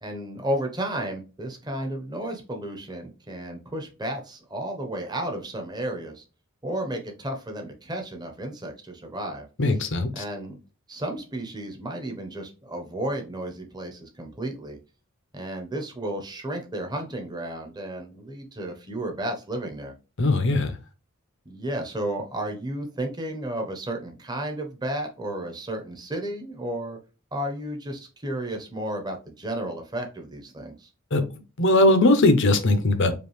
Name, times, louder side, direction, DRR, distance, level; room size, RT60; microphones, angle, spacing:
voice 1, 0.0-6.2 6.6-9.5 10.1-10.6 10.9-14.8 15.3-19.9 21.4-27.0 27.3-30.9, right 1 dB, 20° right, 3 dB, 0.9 m, -33 dB
voice 2, 9.6-10.2 20.2-20.7 31.1-31.2 31.6-33.1, left 2 dB, 60° left, 8 dB, 0.8 m, -19 dB
5.2 x 2.6 x 3.2 m, 0.32 s
head